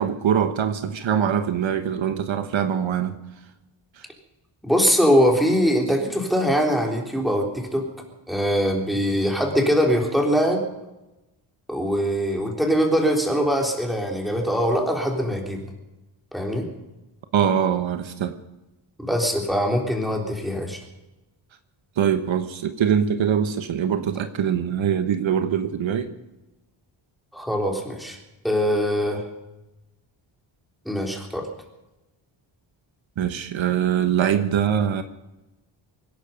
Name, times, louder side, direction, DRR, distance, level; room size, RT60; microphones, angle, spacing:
voice 1, 0.0-3.2 17.3-18.3 22.0-26.1 33.2-35.0, right 8 dB, 70° right, 1.3 m, -23 dB
voice 2, 4.6-7.9 8.3-10.6 11.7-15.6 16.3-16.7 19.0-20.8 27.3-28.2 28.4-29.2 30.9-31.5, equal, ahead, 3.6 m, -22 dB
24.5 x 10.5 x 5.2 m
wide cardioid pair, 120°, 48 cm